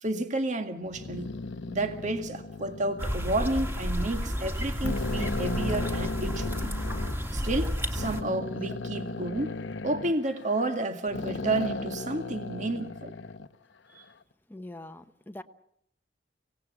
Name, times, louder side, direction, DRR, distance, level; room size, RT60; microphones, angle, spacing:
voice 1, 0.0-1.3 1.7-6.7 7.3-13.1 13.9-14.0, right 2 dB, 45° right, 7 dB, 1.9 m, -31 dB
sound 1, 0.9-3.7 4.3-4.4 4.8-7.2 8.0-10.8 11.1-13.5, left 3 dB, 80° left, 0.9 m, -36 dB
sound 2, 3.0-8.2, equal, 15° right, 2.5 m, -31 dB
voice 2, 14.5-15.4, left 1 dB, 10° left, 8 dB, 1.0 m, -43 dB
25.5 x 18.0 x 7.2 m, 0.73 s
head